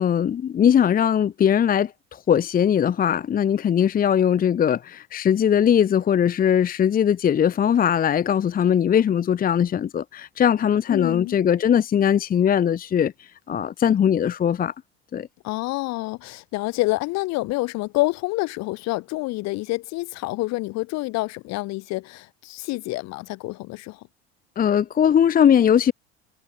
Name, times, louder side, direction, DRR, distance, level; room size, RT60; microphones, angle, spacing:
voice 1, 0.0-14.7 15.1-15.3 24.6-25.9, left 9 dB, 30° left, 0.8 m, -20 dB
voice 2, 10.9-11.4 15.4-24.0, left 21 dB, 55° left, 2.4 m, -27 dB
hypercardioid pair, 70°, 31 cm